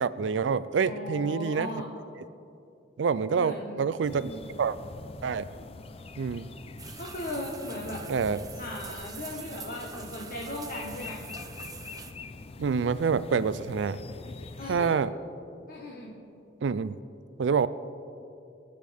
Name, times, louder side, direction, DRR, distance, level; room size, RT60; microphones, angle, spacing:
voice 1, 0.0-1.8 3.0-4.3 4.6-4.8 5.2-5.5 6.2-6.5 8.1-8.4 12.6-14.0 14.7-15.1 16.6-17.0 17.4-17.7, right 5 dB, 75° right, 15 dB, 0.4 m, -27 dB
voice 2, 0.8-1.9 3.3-3.9 4.1-4.5 7.0-8.0 8.6-11.2 14.6-14.9 15.7-16.1, left 1 dB, 50° left, -2 dB, 1.5 m, -38 dB
sound 1, 4.0-15.0, left 3 dB, 35° left, 0.5 m, -44 dB
sound 2, 6.8-12.1, right 5 dB, 20° right, 0.7 m, -45 dB
25.5 x 9.5 x 3.5 m, 2.7 s
head